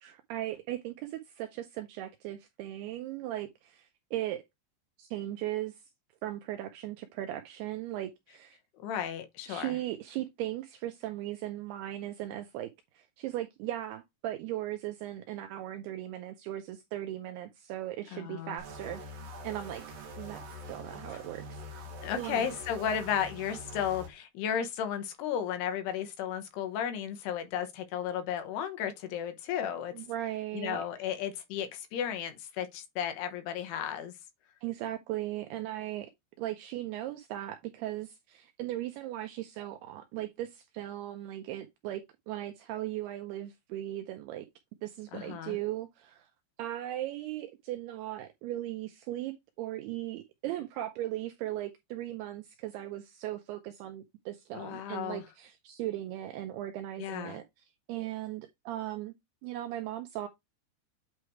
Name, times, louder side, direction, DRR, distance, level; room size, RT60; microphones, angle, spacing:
voice 1, 0.0-4.4 5.0-5.8 6.2-8.6 9.5-12.7 12.9-19.0 19.4-19.8 20.2-21.9 22.2-22.5 29.9-31.1 34.6-36.1 36.4-44.5 44.8-46.3 46.6-57.4 57.9-59.1 59.4-60.3, right 14 dB, 90° right, 2.3 m, -38 dB
voice 2, 8.8-9.8 18.1-18.6 21.1-21.2 22.0-29.9 30.5-34.1 45.1-45.6 54.5-55.2 57.0-57.4, left 9 dB, 70° left, 2.8 m, -34 dB
sound 1, 18.6-24.1, equal, 60° right, 1.7 m, -44 dB
8.8 x 3.2 x 4.6 m
omnidirectional pair, 5.3 m